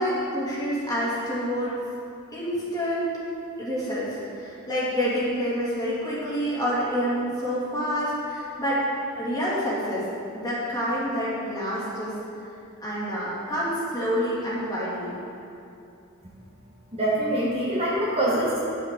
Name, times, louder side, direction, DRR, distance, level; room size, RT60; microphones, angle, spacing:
voice 1, 0.0-1.7 2.3-3.1 3.6-8.8 9.1-10.1 10.3-12.1 12.8-15.2, equal, 15° left, -8 dB, 2.0 m, -27 dB
voice 2, 16.9-18.6, right 1 dB, 30° right, -6 dB, 1.1 m, -24 dB
10.0 x 6.3 x 3.6 m, 2.7 s
head